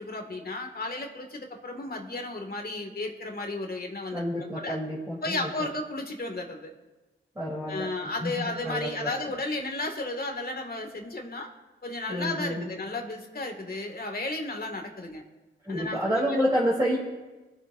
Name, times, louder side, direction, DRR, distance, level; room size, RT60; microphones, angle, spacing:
voice 1, 0.0-4.8 5.2-6.7 7.7-11.5 11.8-15.2 15.7-16.3, left 2 dB, 45° left, 3 dB, 2.3 m, -34 dB
voice 2, 4.1-5.7 7.4-9.1 12.1-12.7 15.6-17.0, equal, 15° right, -7 dB, 3.7 m, -29 dB
24.0 x 8.6 x 2.7 m, 1.2 s
cardioid pair, 60°, 21 cm